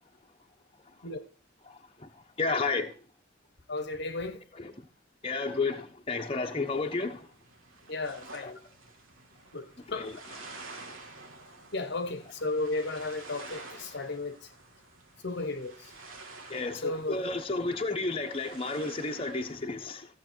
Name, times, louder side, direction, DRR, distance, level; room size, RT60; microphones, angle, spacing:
voice 1, 1.7-2.1 2.4-2.9 4.5-4.7 5.2-7.3 8.4-8.5 9.9-10.2 16.5-20.1, left 3 dB, 30° left, 1.2 m, -32 dB
voice 2, 3.7-4.4 7.9-8.6 9.5-10.0 11.7-14.4 15.2-15.7 16.8-17.2, left 2 dB, 60° left, 1.2 m, -34 dB
sound 1, 6.7-19.6, right 3 dB, 85° right, 2.1 m, -50 dB
15.0 x 7.4 x 4.5 m
head